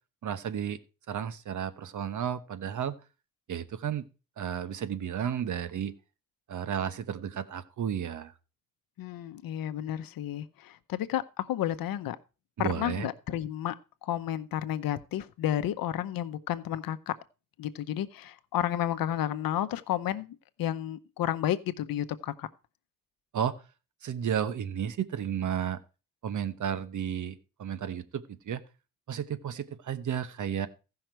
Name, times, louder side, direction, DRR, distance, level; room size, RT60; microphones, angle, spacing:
voice 1, 0.2-0.8 1.1-3.0 3.5-4.1 4.4-5.9 6.5-8.3 12.6-13.1 23.3-23.6 24.0-25.8 26.2-28.6 29.1-30.7, right 8 dB, 60° right, 1.0 m, -33 dB
voice 2, 9.0-12.2 12.6-13.8 14.0-17.1 17.6-22.5, left 11 dB, 85° left, 0.8 m, -31 dB
15.5 x 5.8 x 4.4 m
cardioid pair, 120°, 34 cm